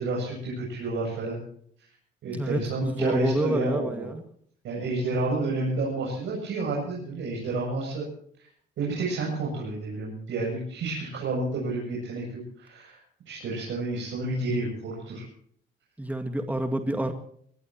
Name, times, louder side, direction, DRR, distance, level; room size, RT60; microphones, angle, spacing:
voice 1, 0.0-1.4 2.2-4.1 4.6-8.1 8.8-13.0 13.3-15.2, right 2 dB, 75° right, -4 dB, 8.0 m, -30 dB
voice 2, 2.3-4.2 16.0-17.1, right 1 dB, 10° right, 6 dB, 2.0 m, -28 dB
23.0 x 19.0 x 3.0 m, 0.62 s
cardioid pair, 90°, 20 cm